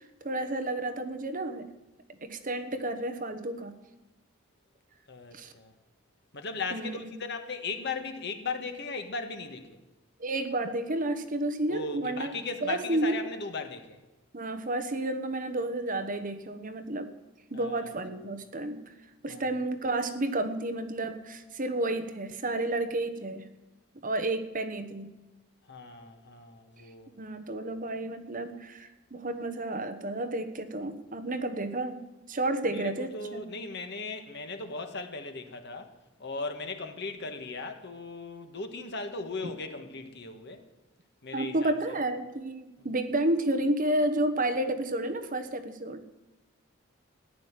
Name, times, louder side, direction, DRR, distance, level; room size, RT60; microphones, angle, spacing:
voice 1, 0.2-1.7 2.2-3.7 5.3-5.5 6.7-7.1 10.2-12.3 12.6-13.2 14.3-17.1 17.5-18.8 19.2-23.5 24.0-25.2 27.2-32.0 32.3-33.4 41.3-46.0, right 1 dB, 40° right, 9 dB, 1.2 m, -31 dB
voice 2, 5.1-5.7 6.3-9.8 11.7-14.0 17.5-17.9 19.3-19.4 25.7-27.1 32.7-35.9 36.2-40.6 41.2-42.0, left 3 dB, 55° left, 7 dB, 1.6 m, -37 dB
14.5 x 10.5 x 7.5 m, 1.1 s
head